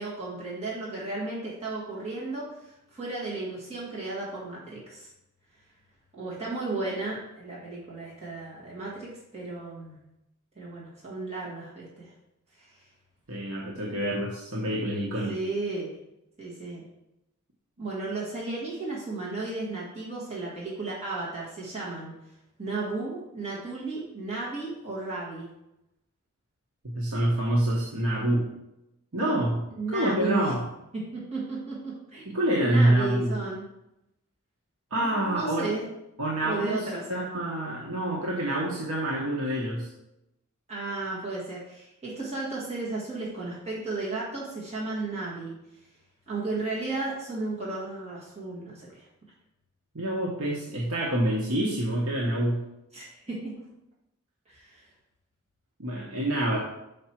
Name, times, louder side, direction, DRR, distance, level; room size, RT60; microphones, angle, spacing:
voice 1, 0.0-5.1 6.1-10.0 10.5-12.1 12.6-12.8 15.3-15.9 16.4-16.8 17.8-22.1 22.6-25.5 29.7-30.5 30.9-32.3 32.6-33.6 35.0-35.9 36.4-37.3 40.7-45.5 46.3-49.0 52.9-53.4 54.5-54.8, right 3 dB, 30° right, -7 dB, 1.6 m, -34 dB
voice 2, 13.3-15.4 26.8-28.5 29.1-29.6 29.9-30.6 32.3-33.4 34.9-35.7 36.2-39.9 49.9-52.6 55.8-56.6, right 1 dB, 75° right, -3 dB, 1.1 m, -27 dB
5.9 x 5.2 x 4.4 m, 0.88 s
head